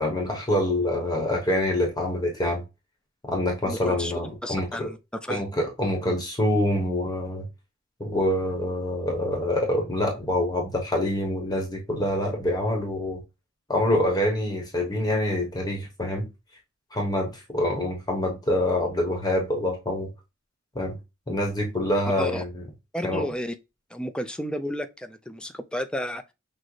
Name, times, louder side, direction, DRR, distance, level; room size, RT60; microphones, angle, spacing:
voice 1, 0.0-2.6 3.3-4.9 5.3-7.5 8.0-13.2 13.7-16.3 16.9-20.1 20.7-21.0 21.3-22.6 23.0-23.3, left 1 dB, 20° left, 0.9 m, -26 dB
voice 2, 3.6-4.1 4.4-5.4 22.2-22.4 22.9-23.6 23.9-26.2, equal, 5° left, 0.3 m, -32 dB
6.1 x 2.1 x 3.1 m
head